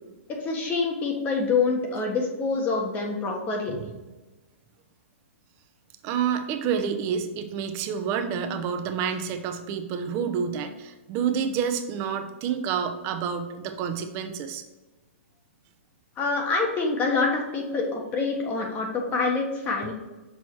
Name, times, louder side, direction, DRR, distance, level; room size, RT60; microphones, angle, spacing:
voice 1, 0.4-3.8 16.2-19.9, left 4 dB, 25° left, 1 dB, 1.5 m, -26 dB
voice 2, 6.0-14.6, right 7 dB, 35° right, 8 dB, 0.8 m, -28 dB
6.3 x 4.1 x 4.8 m, 1.1 s
hypercardioid pair, 125°, 7 cm